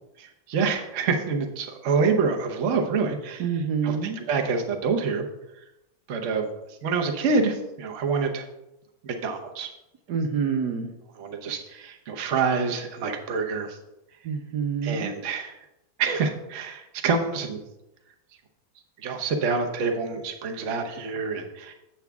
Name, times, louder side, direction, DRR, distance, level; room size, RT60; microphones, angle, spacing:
voice 1, 0.2-3.5 3.8-5.3 6.1-6.5 6.8-8.4 9.0-9.7 11.2-13.8 14.8-15.5 16.0-17.6 19.0-21.7, right 4 dB, 50° right, 3 dB, 1.0 m, -27 dB
voice 2, 3.4-4.2 10.1-10.9 14.2-15.1, right 6 dB, 70° right, 3 dB, 1.2 m, -27 dB
8.0 x 7.2 x 3.5 m, 0.91 s
omnidirectional pair, 2.1 m